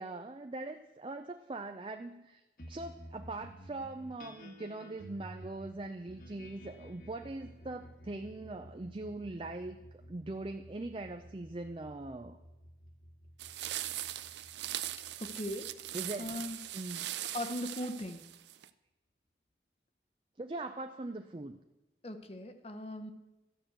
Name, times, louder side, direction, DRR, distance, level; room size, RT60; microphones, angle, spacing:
voice 1, 0.0-2.4 2.7-12.4 15.9-16.3 16.7-17.1 20.4-21.6, right 2 dB, 30° right, 7 dB, 0.5 m, -41 dB
sound 1, 2.6-17.3, equal, 50° left, 1.5 m, -53 dB
sound 2, 13.4-18.7, right 13 dB, 85° right, 0.5 m, -40 dB
voice 2, 15.2-15.7 16.2-16.6 17.3-18.2 22.0-23.1, left 1 dB, 35° left, 8 dB, 0.9 m, -39 dB
13.0 x 6.2 x 7.9 m, 1.0 s
head